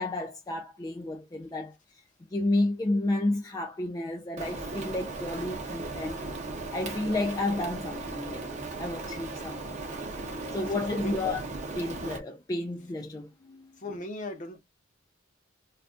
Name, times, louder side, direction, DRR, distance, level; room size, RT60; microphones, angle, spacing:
voice 1, 0.0-6.2 6.7-9.7 10.5-11.4 11.8-13.8, left 2 dB, 20° left, 0.3 m, -31 dB
Rain, 4.4-12.2, right 3 dB, 35° right, 0.7 m, -37 dB
voice 2, 10.3-11.1 13.8-14.6, left 2 dB, 40° left, 0.7 m, -38 dB
2.3 x 2.3 x 3.5 m
head